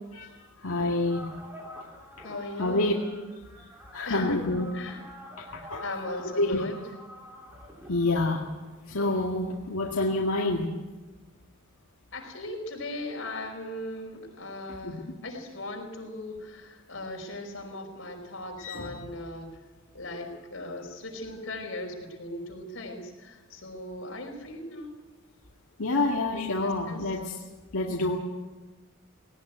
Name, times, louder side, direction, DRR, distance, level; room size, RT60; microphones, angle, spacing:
voice 1, 0.6-1.2 2.6-2.9 3.9-4.7 5.4-5.8 6.4-6.7 7.9-8.4 8.9-10.7 14.8-15.0 18.6-19.0 25.8-27.4 27.7-28.2, left 2 dB, 85° left, -1 dB, 2.1 m, -27 dB
sound 1, 0.7-9.2, equal, 10° right, 2.9 m, -47 dB
voice 2, 2.2-2.8 4.0-4.4 4.7-5.0 5.8-6.8 12.1-19.5 19.9-24.9 26.3-27.1, left 1 dB, 60° left, 1 dB, 5.2 m, -38 dB
19.0 x 18.0 x 9.3 m, 1.2 s
head